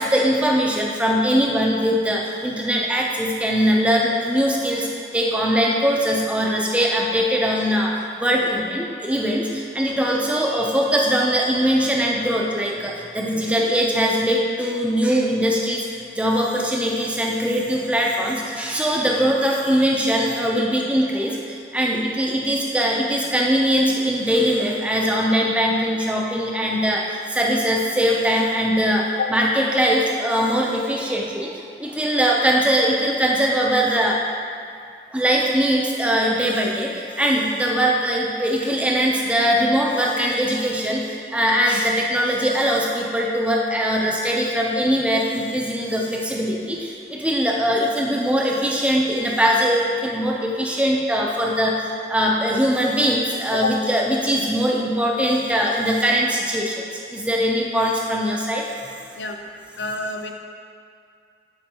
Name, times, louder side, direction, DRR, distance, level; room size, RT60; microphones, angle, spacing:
voice 1, 0.0-4.9 5.1-7.9 8.2-15.8 16.2-21.4 21.7-27.0 27.3-29.0 29.3-31.5 31.8-34.2 35.1-36.9 37.2-41.0 41.3-51.7 52.1-56.7 57.1-58.6, equal, 5° right, -2 dB, 0.5 m, -21 dB
voice 2, 59.8-60.3, left 5 dB, 85° left, 3 dB, 0.5 m, -27 dB
7.6 x 4.5 x 2.8 m, 2.3 s
head